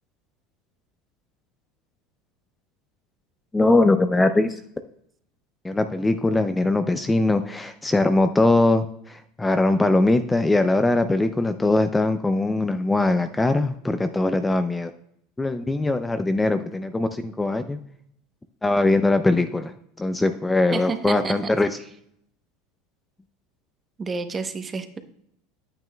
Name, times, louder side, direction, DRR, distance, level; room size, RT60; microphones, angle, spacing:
voice 1, 3.5-4.6 5.6-14.9 15.4-17.8 18.6-21.7, left 2 dB, 10° left, 9 dB, 0.4 m, -21 dB
voice 2, 20.7-21.5 24.0-25.0, right 4 dB, 25° right, 8 dB, 0.8 m, -30 dB
9.1 x 8.7 x 2.2 m, 0.70 s
supercardioid pair, 105°, 0 cm